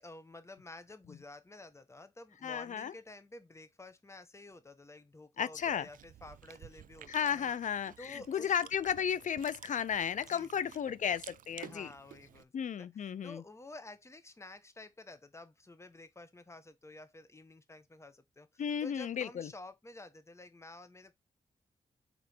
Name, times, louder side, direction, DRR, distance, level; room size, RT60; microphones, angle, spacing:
voice 1, 0.0-7.5 8.0-8.5 10.3-10.9 11.6-12.5 12.8-21.1, left 2 dB, 20° left, 1.2 m, -51 dB
voice 2, 2.4-2.9 5.4-5.9 7.1-11.9 12.5-13.4 18.6-19.5, left 8 dB, 60° left, 0.5 m, -34 dB
Chewing mastication, 5.5-12.4, right 10 dB, 70° right, 0.4 m, -54 dB
5.2 x 4.4 x 4.4 m
cardioid pair, 60°, 15 cm